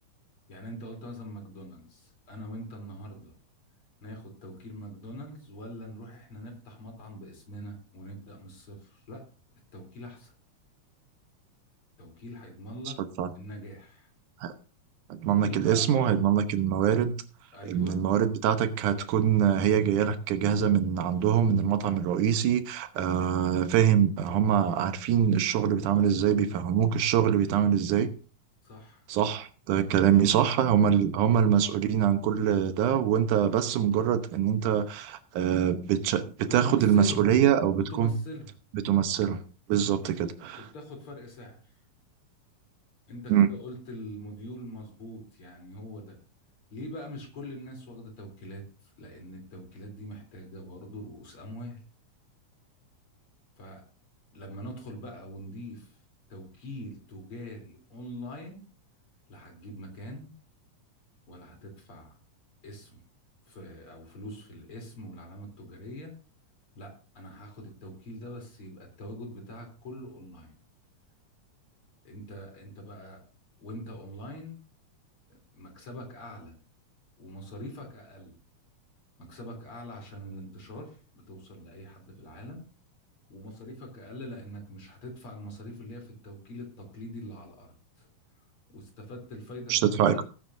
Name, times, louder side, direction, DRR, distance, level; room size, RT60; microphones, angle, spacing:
voice 1, 0.5-3.3 4.0-9.2 9.7-10.3 12.0-13.0 13.4-14.1 15.3-16.1 17.5-18.0 25.8-26.0 28.6-29.4 29.7-30.6 36.4-37.4 37.8-38.5 40.6-41.7 43.1-46.2 46.7-51.8 53.6-53.8 54.3-56.0 56.3-58.7 59.3-60.3 61.3-62.2 62.6-63.0 63.5-66.2 66.7-70.6 72.0-73.2 73.6-74.6 75.5-76.5 77.2-78.3 79.2-82.7 83.3-88.1 88.7-90.2, left 1 dB, 45° left, 4.3 m, -43 dB
voice 2, 15.1-17.1 17.7-28.1 29.1-38.1 38.8-39.4 39.7-40.6 43.3-43.5 89.7-90.2, right 9 dB, 80° right, 2.5 m, -24 dB
18.0 x 9.3 x 2.7 m
omnidirectional pair, 3.6 m